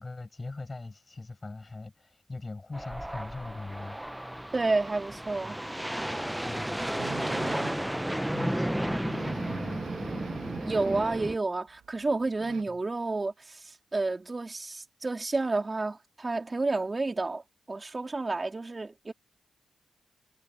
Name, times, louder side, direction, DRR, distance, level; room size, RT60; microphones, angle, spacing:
voice 1, 0.0-4.3 6.4-7.2 8.3-9.8 12.7-12.8, left 3 dB, 30° left, 6.8 m, -40 dB
sound 1, 2.7-11.4, right 1 dB, 5° right, 0.6 m, -33 dB
voice 2, 4.5-5.6 10.6-17.4 17.7-19.1, right 3 dB, 30° right, 3.2 m, -30 dB
sound 2, 7.0-7.9 8.4-8.5 8.7-8.8 9.0-11.4 11.7-12.6, right 9 dB, 90° right, 1.7 m, -41 dB
cardioid pair, 75°, 0 cm